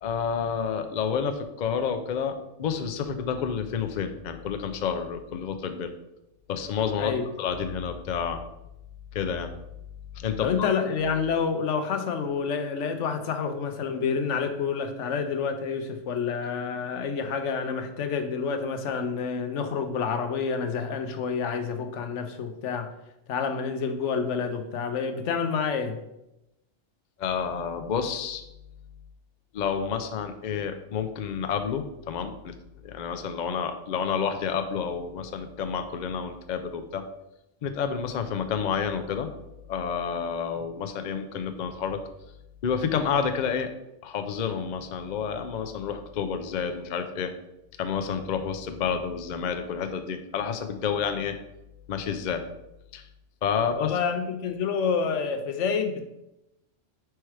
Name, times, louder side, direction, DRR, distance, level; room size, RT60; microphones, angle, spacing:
voice 1, 0.0-5.9 6.5-7.1 7.4-8.4 9.1-9.5 10.1-10.7 27.2-28.4 29.5-32.5 32.8-37.0 37.6-39.3 39.7-42.0 42.6-43.7 44.0-47.3 47.8-51.4 51.9-52.4 52.9-53.1 53.4-54.0, left 7 dB, 55° left, 7 dB, 0.5 m, -29 dB
voice 2, 7.0-7.3 10.4-22.9 23.3-26.0 53.8-56.1, left 6 dB, 75° left, 7 dB, 1.0 m, -28 dB
4.7 x 4.5 x 4.7 m, 0.89 s
omnidirectional pair, 1.2 m